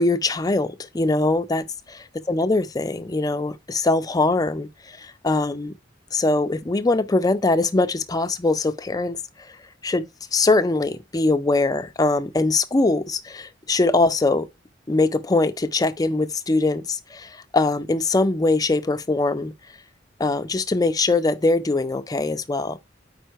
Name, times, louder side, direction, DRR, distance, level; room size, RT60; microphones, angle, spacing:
voice 1, 0.0-5.7 6.1-9.2 9.8-14.5 14.9-19.5 20.2-22.8, left 2 dB, 20° left, 0.4 m, -22 dB
4.8 x 4.4 x 4.6 m
head